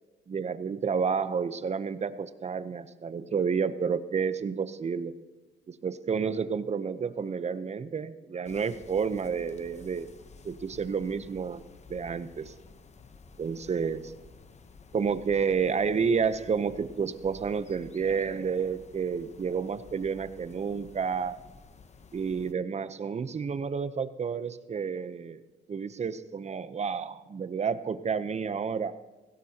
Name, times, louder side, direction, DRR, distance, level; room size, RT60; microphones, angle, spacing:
voice 1, 0.3-5.1 5.7-10.1 10.4-11.6 11.9-12.5 13.4-14.0 14.9-21.4 22.1-25.4 25.7-28.9, right 6 dB, 35° right, 13 dB, 0.8 m, -30 dB
sound 1, 8.4-22.5, left 4 dB, 35° left, 1.0 m, -52 dB
17.0 x 16.5 x 2.9 m, 1.2 s
cardioid pair, 90°, 20 cm